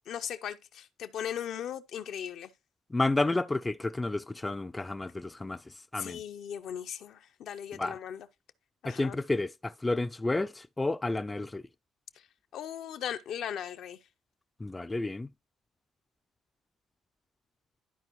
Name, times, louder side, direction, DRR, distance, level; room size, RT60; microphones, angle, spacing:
voice 1, 0.1-2.5 6.0-8.3 8.8-9.2 12.5-14.0, left 9 dB, 70° left, 0.6 m, -38 dB
voice 2, 2.9-6.2 7.7-8.0 8.8-11.6 14.6-15.3, left 2 dB, 20° left, 0.3 m, -31 dB
12.0 x 4.4 x 3.0 m
supercardioid pair, 70°, 0 cm